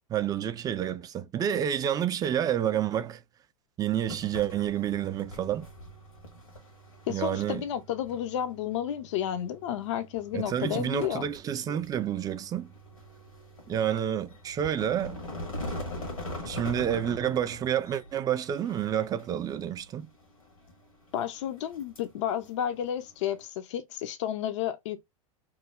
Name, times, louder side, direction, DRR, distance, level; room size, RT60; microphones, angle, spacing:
voice 1, 0.1-3.2 3.8-5.7 7.1-7.6 10.3-12.7 13.7-15.2 16.4-20.1, right 10 dB, 20° right, 0.3 m, -29 dB
sound 1, 4.0-23.4, left 1 dB, 90° left, 1.4 m, -43 dB
voice 2, 7.1-11.3 21.1-25.0, left 10 dB, 60° left, 0.5 m, -31 dB
3.0 x 2.0 x 3.5 m
figure-of-eight pair, 90°, 17 cm